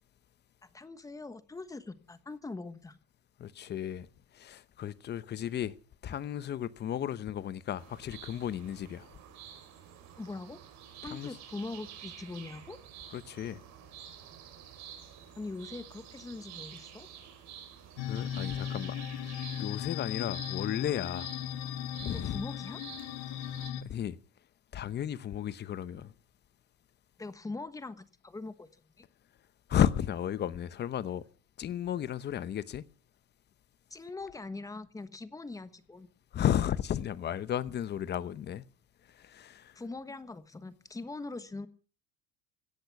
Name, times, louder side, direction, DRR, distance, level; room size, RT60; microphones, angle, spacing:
voice 1, 0.6-3.0 10.2-10.6 11.0-12.8 15.4-17.1 22.2-22.9 27.2-28.7 33.9-36.1 39.7-41.7, left 3 dB, 10° left, 1.2 m, -42 dB
voice 2, 3.4-4.1 4.3-5.7 6.0-9.1 11.1-11.3 13.1-13.6 18.0-19.0 19.6-21.3 22.0-22.4 23.8-24.2 24.7-26.1 29.7-31.2 31.6-32.8 36.3-38.6 39.1-39.7, left 10 dB, 30° left, 0.9 m, -33 dB
sound 1, 7.8-23.7, right 9 dB, 55° right, 5.4 m, -50 dB
sound 2, 18.0-23.8, left 10 dB, 80° left, 1.4 m, -37 dB
17.0 x 13.5 x 6.0 m
cardioid pair, 140°, 32 cm